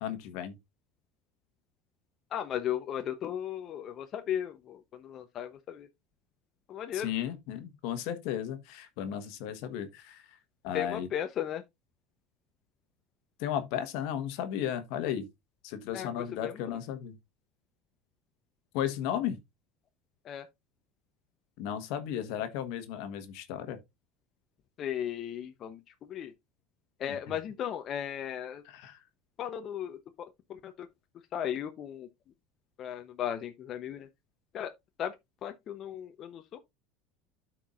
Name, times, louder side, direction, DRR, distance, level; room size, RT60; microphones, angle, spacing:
voice 1, 0.0-0.6 6.9-10.4 10.6-11.1 13.4-15.3 15.6-17.2 18.7-19.4 21.6-23.8 27.1-27.4 28.6-29.0, left 10 dB, 70° left, 1.3 m, -35 dB
voice 2, 2.3-5.9 6.7-7.1 10.7-11.6 15.9-16.1 16.4-16.5 20.3-20.4 24.8-25.8 26.1-26.3 27.0-28.6 29.4-30.9 31.3-32.1 32.8-34.1 34.5-34.7 35.0-35.1 35.4-36.6, left 10 dB, 45° left, 0.8 m, -36 dB
12.5 x 4.6 x 2.5 m
supercardioid pair, 95°, 0 cm